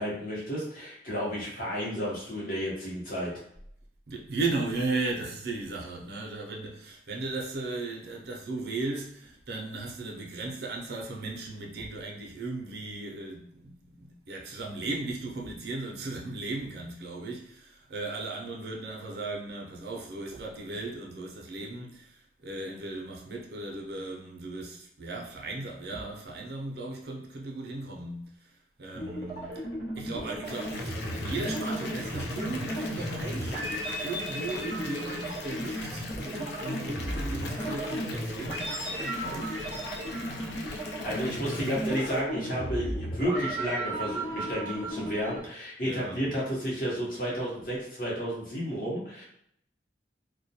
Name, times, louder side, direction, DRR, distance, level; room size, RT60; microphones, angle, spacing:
voice 1, 0.0-3.3 41.0-49.2, equal, 50° left, 0.8 m, -32 dB
voice 2, 4.1-29.6 30.0-33.6 34.0-39.6 45.8-46.3, right 2 dB, 60° right, 0.5 m, -36 dB
sound 1, 28.9-45.4, right 1 dB, 90° left, 0.9 m, -35 dB
Water tap faucet / Bathtub (filling or washing) / Fill (with liquid), 30.4-42.2, left 3 dB, 70° left, 0.3 m, -40 dB
2.2 x 2.1 x 2.7 m
head